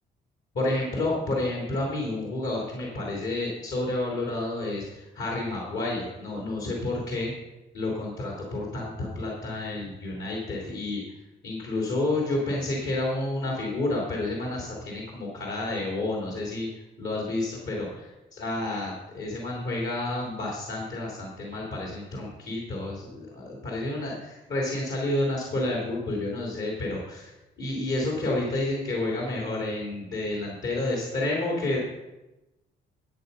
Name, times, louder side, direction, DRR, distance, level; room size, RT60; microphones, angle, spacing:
voice 1, 0.5-7.3 7.7-11.0 11.4-16.7 17.0-18.0 18.4-27.3 27.6-31.8, left 2 dB, 70° left, -3 dB, 3.4 m, -30 dB
13.0 x 8.6 x 5.6 m, 1.0 s
cardioid pair, 90°, 20 cm